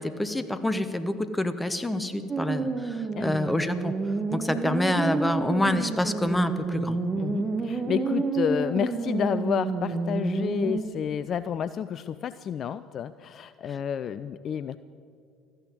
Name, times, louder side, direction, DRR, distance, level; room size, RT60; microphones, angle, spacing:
voice 1, 0.0-3.9 4.3-7.0, left 1 dB, 10° left, 11 dB, 0.9 m, -27 dB
sound 1, 2.3-10.8, right 3 dB, 25° right, 1.3 m, -29 dB
voice 2, 7.2-14.8, left 8 dB, 40° left, 14 dB, 0.3 m, -30 dB
13.5 x 10.0 x 7.9 m, 2.4 s
figure-of-eight pair, 60°, 0 cm